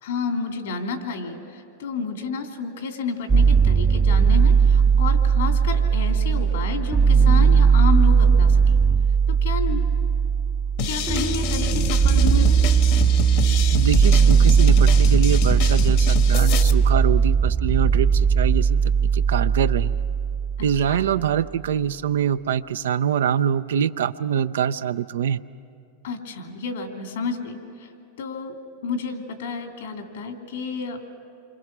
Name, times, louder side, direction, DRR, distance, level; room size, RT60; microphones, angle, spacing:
voice 1, 0.0-8.8 9.3-9.8 10.8-12.6 20.9-21.1 26.0-27.9 28.2-31.0, left 5 dB, 80° left, 4 dB, 3.0 m, -30 dB
sound 1, 3.3-21.3, right 6 dB, 15° right, 0.5 m, -18 dB
sound 2, 10.8-16.7, left 6 dB, 60° left, 1.4 m, -28 dB
voice 2, 13.7-20.0 20.6-25.4, right 9 dB, 80° right, 12 dB, 0.6 m, -24 dB
28.0 x 25.0 x 6.1 m, 2.6 s
hypercardioid pair, 110°, 0 cm